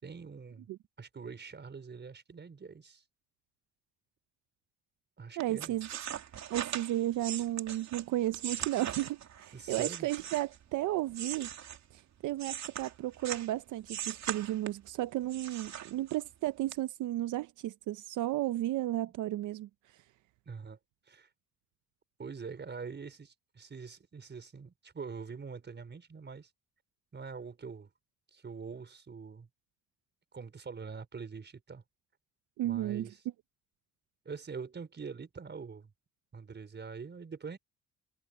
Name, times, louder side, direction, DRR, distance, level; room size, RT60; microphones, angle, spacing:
voice 1, 0.0-0.7 1.0-3.0 5.2-5.7 9.5-10.1 20.5-20.8 21.1-21.3 22.2-26.5 27.1-27.9 28.3-29.5 30.3-31.8 32.6-33.2 34.3-35.9 36.3-37.6, right 5 dB, 35° right, 5.2 m, -44 dB
sound 1, 5.4-10.7 11.1-13.5 13.9-14.9 15.3-16.3 16.7-16.8, right 9 dB, 65° right, 2.7 m, -40 dB
voice 2, 5.4-5.9 6.5-11.5 11.9-20.0 32.6-33.1, right 14 dB, 80° right, 0.7 m, -33 dB
cardioid pair, 90°, 30 cm